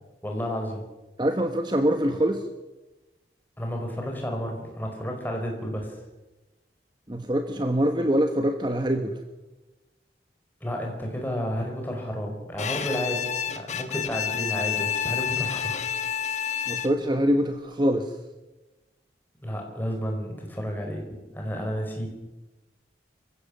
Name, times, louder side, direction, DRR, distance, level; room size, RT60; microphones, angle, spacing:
voice 1, 0.2-0.8 3.6-6.0 10.6-15.8 19.4-22.1, equal, 10° left, 1 dB, 5.0 m, -31 dB
voice 2, 1.2-2.4 7.1-9.1 16.7-18.1, equal, 25° right, 6 dB, 1.2 m, -24 dB
Bowed string instrument, 12.6-17.2, left 8 dB, 40° left, 1.5 m, -29 dB
26.5 x 15.5 x 7.4 m, 1.1 s
head